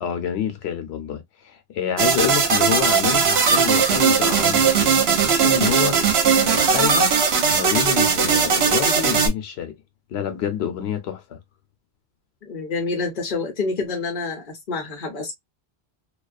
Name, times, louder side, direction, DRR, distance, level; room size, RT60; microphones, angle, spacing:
voice 1, 0.0-6.0 6.4-7.1 7.5-9.7 10.1-11.4, left 8 dB, 90° left, 0.9 m, -27 dB
sound 1, 2.0-9.3, right 6 dB, 75° right, 0.9 m, -18 dB
voice 2, 12.4-15.3, left 4 dB, 55° left, 0.8 m, -27 dB
2.3 x 2.3 x 2.4 m
omnidirectional pair, 1.1 m